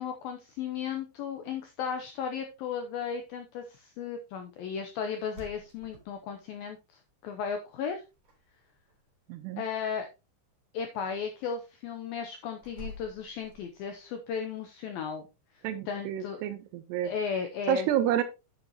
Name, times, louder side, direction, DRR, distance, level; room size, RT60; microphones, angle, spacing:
voice 1, 0.0-8.0 9.6-10.1 10.7-15.2 15.6-16.5 17.0-17.9, left 6 dB, 85° left, 6 dB, 2.1 m, -35 dB
sound 1, 5.1-6.7 7.8-8.4 8.6-9.1 12.6-14.0, left 1 dB, 25° right, 3.4 m, -48 dB
voice 2, 9.3-9.6 15.6-17.1 17.7-18.2, right 11 dB, 80° right, 10 dB, 2.6 m, -29 dB
9.7 x 8.2 x 2.9 m, 0.28 s
omnidirectional pair, 5.4 m